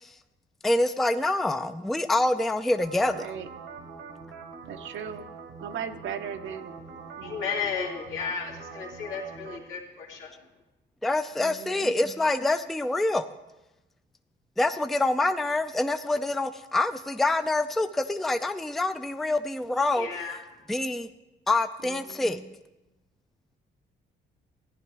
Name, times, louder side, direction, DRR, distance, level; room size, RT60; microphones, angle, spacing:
voice 1, 0.6-3.3 11.0-13.3 14.6-20.1 20.7-21.1 21.5-22.5, left 2 dB, ahead, 9 dB, 0.4 m, -26 dB
sound 1, 2.7-9.6, right 5 dB, 90° right, 1.6 m, -44 dB
voice 2, 3.1-3.5 4.7-5.3 5.6-6.7 7.2-7.7 11.4-11.9 21.8-22.2, right 8 dB, 70° right, 8 dB, 0.7 m, -38 dB
voice 3, 7.1-10.3 19.9-20.4, left 6 dB, 75° left, -3 dB, 2.4 m, -34 dB
15.0 x 9.8 x 3.4 m, 1.0 s
cardioid pair, 90°, 20 cm